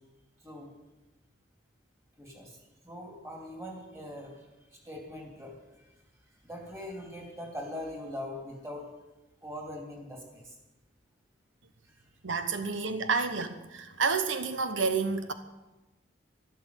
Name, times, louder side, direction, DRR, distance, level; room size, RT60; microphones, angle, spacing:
voice 1, 2.2-2.6 2.8-4.5 4.7-5.9 6.4-8.9 9.4-10.6, left 1 dB, 15° right, 1 dB, 3.1 m, -42 dB
voice 2, 12.2-15.3, right 4 dB, 90° right, 10 dB, 1.0 m, -29 dB
12.5 x 12.0 x 8.0 m, 1.1 s
head